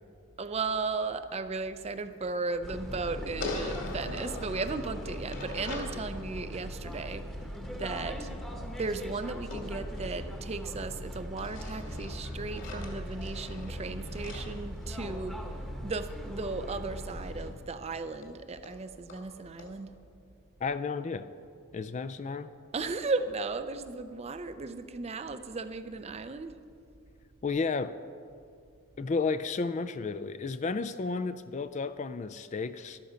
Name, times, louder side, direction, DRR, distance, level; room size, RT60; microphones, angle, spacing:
voice 1, 0.4-7.3 7.7-8.3 8.8-15.4 15.8-19.9 22.7-26.6, right 3 dB, 30° right, 11 dB, 0.5 m, -35 dB
sound 1, 2.6-17.5, equal, ahead, 1.0 m, -39 dB
sound 2, 3.4-6.0 9.5-10.9 11.4-15.5 17.4-17.5 17.8-17.9 18.2-18.3 18.6-18.7 19.1-19.2 19.6-19.7, left 3 dB, 60° left, 2.5 m, -42 dB
voice 2, 20.6-21.3 21.7-22.5 27.4-27.9 29.0-33.0, left 4 dB, 30° left, 13 dB, 0.3 m, -32 dB
13.5 x 12.0 x 5.1 m, 2.3 s
head